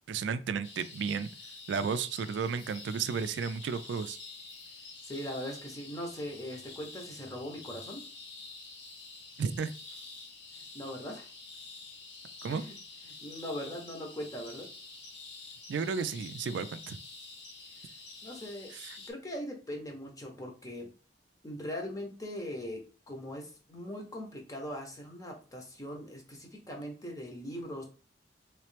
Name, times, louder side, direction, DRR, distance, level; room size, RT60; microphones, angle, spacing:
voice 1, 0.1-1.3 1.7-4.2 9.4-9.7 12.4-12.6 15.7-17.0 18.7-19.0, right 6 dB, 75° right, 12 dB, 0.3 m, -33 dB
sound 1, 0.6-19.1, left 3 dB, 70° left, 1.0 m, -48 dB
voice 2, 5.0-8.0 10.5-11.3 12.5-12.7 13.0-14.7 18.2-18.7 19.1-20.9 21.4-27.8, equal, 20° left, 1 dB, 0.9 m, -40 dB
3.2 x 3.1 x 3.2 m, 0.36 s
head